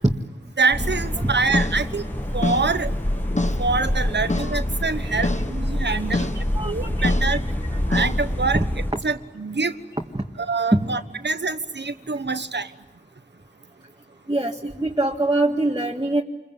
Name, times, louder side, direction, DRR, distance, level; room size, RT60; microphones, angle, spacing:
voice 1, 0.6-2.0 2.3-2.9 3.6-6.3 6.6-7.4 7.9-8.6 9.0-9.7 10.4-12.7, right 4 dB, 85° right, 11 dB, 1.3 m, -25 dB
sound 1, 0.7-8.9, left 1 dB, 10° left, 1.8 m, -26 dB
sound 2, 0.8-8.6, left 2 dB, 40° left, 1.3 m, -30 dB
voice 2, 4.3-4.6 5.0-5.3 6.3-7.2 7.7-7.8 8.5-8.6 10.1-10.2 10.7-10.9 14.3-16.2, right 2 dB, 25° right, 0 dB, 1.9 m, -24 dB
28.5 x 22.5 x 9.4 m, 1.1 s
wide cardioid pair, 45°, 18 cm